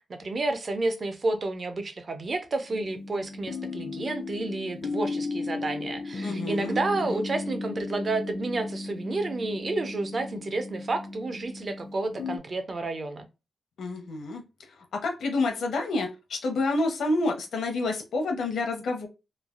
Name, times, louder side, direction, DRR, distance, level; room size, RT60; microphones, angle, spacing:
voice 1, 0.0-13.3, right 2 dB, 35° right, 0.4 m, -30 dB
sound 1, 2.7-12.4, left 3 dB, 45° left, 0.3 m, -35 dB
voice 2, 6.2-7.2 13.8-19.1, left 2 dB, 80° left, 0.7 m, -29 dB
3.1 x 2.3 x 2.3 m
wide cardioid pair, 175°, 0 cm